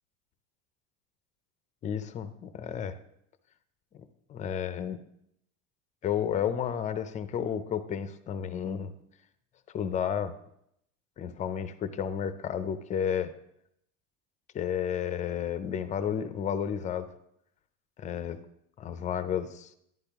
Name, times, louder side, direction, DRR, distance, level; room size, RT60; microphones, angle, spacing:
voice 1, 1.8-3.0 3.9-4.0 4.3-5.0 6.0-8.9 9.7-10.3 11.2-13.3 14.5-17.1 18.0-18.4 18.8-19.7, left 8 dB, 20° left, 12 dB, 0.4 m, -32 dB
11.0 x 10.0 x 3.5 m, 0.76 s
cardioid pair, 155°, 37 cm